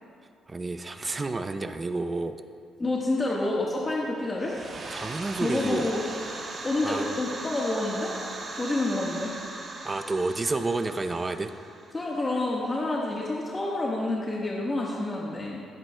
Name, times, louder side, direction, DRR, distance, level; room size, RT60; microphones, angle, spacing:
voice 1, 0.5-2.4 4.9-5.9 6.8-7.2 9.8-11.5, right 3 dB, 25° right, 9 dB, 0.6 m, -30 dB
voice 2, 2.8-4.5 5.4-6.0 6.6-8.1 8.5-9.3 11.9-15.6, left 2 dB, 25° left, -4 dB, 1.3 m, -28 dB
sound 1, 4.3-12.9, right 2 dB, 45° right, 1.7 m, -39 dB
16.5 x 9.5 x 2.2 m, 2.4 s
cardioid pair, 90°, 0 cm